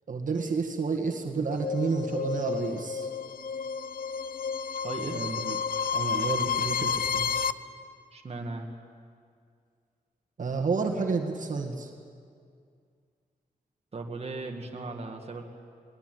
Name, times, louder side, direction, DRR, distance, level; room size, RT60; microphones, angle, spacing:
voice 1, 0.1-3.1 5.1-5.6 5.9-7.3 10.4-11.9, right 4 dB, 60° right, 2 dB, 1.8 m, -30 dB
sound 1, 1.5-7.5, left 6 dB, 75° left, 0.6 m, -31 dB
voice 2, 4.8-5.3 6.8-6.9 8.1-8.7 13.9-15.4, right 3 dB, 40° right, 1 dB, 1.8 m, -37 dB
20.5 x 19.0 x 9.2 m, 2.2 s
wide cardioid pair, 135°, 15 cm